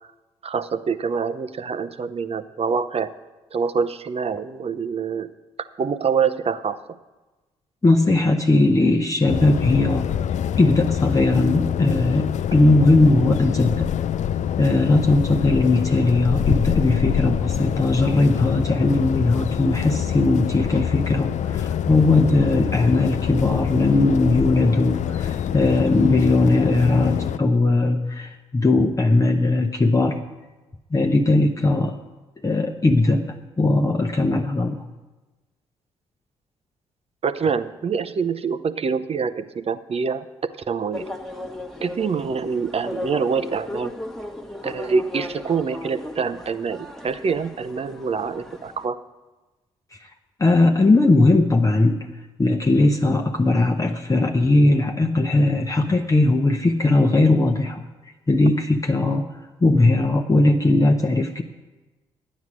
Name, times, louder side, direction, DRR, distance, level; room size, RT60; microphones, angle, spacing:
voice 1, 0.4-3.1 3.5-5.3 5.8-6.8 37.2-40.2 40.7-41.0 41.8-43.9 44.6-49.0, right 5 dB, 40° right, 13 dB, 0.7 m, -25 dB
voice 2, 7.8-10.2 10.6-13.9 14.6-30.2 30.9-32.0 32.4-34.8 50.0-50.1 50.4-52.1 52.4-57.8 58.3-59.3 59.6-61.4, left 2 dB, 20° left, 3 dB, 0.9 m, -19 dB
sound 1, 9.3-27.4, left 9 dB, 50° left, 0.5 m, -25 dB
sound 2, 40.9-48.9, left 1 dB, ahead, 1.4 m, -36 dB
11.5 x 9.4 x 6.2 m, 1.2 s
hypercardioid pair, 40°, 15 cm